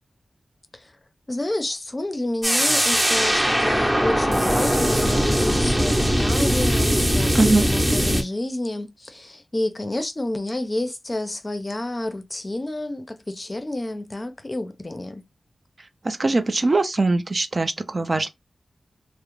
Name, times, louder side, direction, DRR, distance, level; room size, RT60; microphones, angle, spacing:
voice 1, 1.3-15.2, left 1 dB, 30° left, 0.5 m, -29 dB
sound 1, 2.4-8.2, equal, 15° right, 0.7 m, -20 dB
voice 2, 16.0-18.3, right 2 dB, 45° right, 0.4 m, -21 dB
2.4 x 2.0 x 2.9 m
cardioid pair, 55°, 0 cm